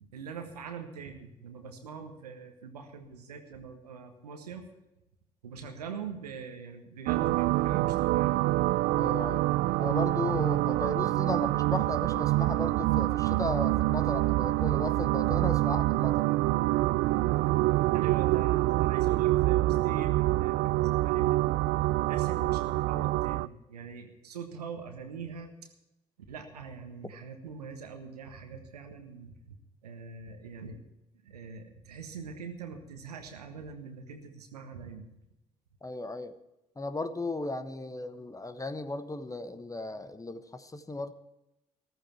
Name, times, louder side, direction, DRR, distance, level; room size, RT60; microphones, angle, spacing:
voice 1, 0.1-4.6 5.4-8.4 17.9-25.5 26.3-29.6 29.8-30.8 31.2-35.1, right 5 dB, 80° right, 6 dB, 1.5 m, -43 dB
sound 1, 7.1-23.5, right 18 dB, 55° right, 0.4 m, -26 dB
voice 2, 8.9-9.4 9.8-16.3 35.8-36.3 36.8-41.1, left 2 dB, 15° left, 11 dB, 1.2 m, -35 dB
14.5 x 14.0 x 4.5 m, 0.91 s
figure-of-eight pair, 50°, 20 cm